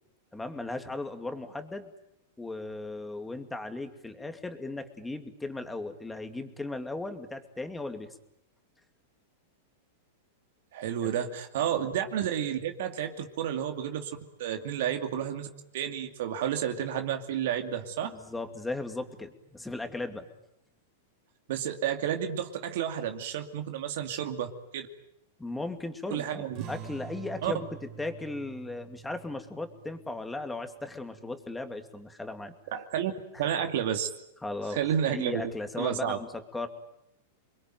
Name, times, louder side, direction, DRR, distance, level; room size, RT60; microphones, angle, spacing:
voice 1, 0.3-1.9 2.4-8.2 11.0-11.1 18.0-20.3 25.4-27.7 28.0-32.5 33.3-33.4 34.4-34.8 35.1-36.7, left 2 dB, 5° left, 7 dB, 2.6 m, -37 dB
voice 2, 10.7-14.1 14.4-15.5 15.7-18.1 21.5-24.9 26.1-26.6 27.4-27.5 32.7-33.1 33.4-34.1 34.7-35.4 35.8-36.2, right 9 dB, 65° right, 5 dB, 2.5 m, -31 dB
sound 1, 26.5-31.6, right 8 dB, 45° right, 4.3 m, -46 dB
29.0 x 22.0 x 9.2 m, 0.82 s
hypercardioid pair, 125°, 0 cm